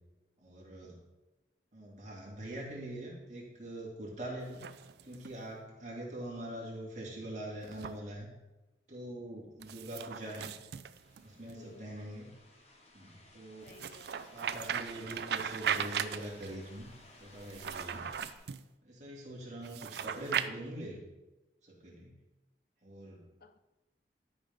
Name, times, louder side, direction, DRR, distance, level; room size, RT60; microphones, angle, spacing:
voice 1, 0.4-1.0 1.7-4.7 5.0-8.3 8.9-10.5 11.2-12.3 12.9-13.8 14.3-16.9 17.2-18.1 18.8-21.1 21.6-22.1 22.8-23.3, right 1 dB, 40° right, -4 dB, 2.4 m, -43 dB
sound 1, 4.4-5.4 7.6-8.0 9.6-11.6 13.7-16.6 17.4-18.6 19.6-20.5, right 8 dB, 70° right, 0.4 m, -38 dB
sound 2, 11.0-18.4, left 1 dB, 35° left, 1.1 m, -58 dB
voice 2, 11.6-11.9 13.6-14.2 23.4-23.6, left 4 dB, 55° left, 10 dB, 0.5 m, -57 dB
12.0 x 5.3 x 3.5 m, 1.1 s
head